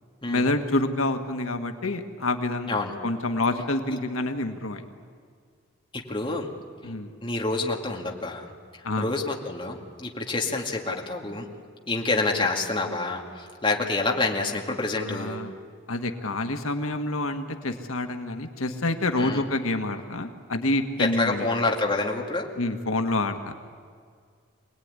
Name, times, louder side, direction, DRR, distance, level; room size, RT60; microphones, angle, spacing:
voice 1, 0.3-4.8 6.8-7.1 8.8-9.1 14.9-15.5 15.9-21.5 22.6-23.5, left 2 dB, 90° left, 6 dB, 1.6 m, -27 dB
voice 2, 5.9-6.5 7.2-11.5 11.9-15.4 19.2-19.5 21.0-22.5, left 3 dB, 25° left, 0 dB, 2.3 m, -28 dB
25.5 x 19.0 x 9.7 m, 2.1 s
head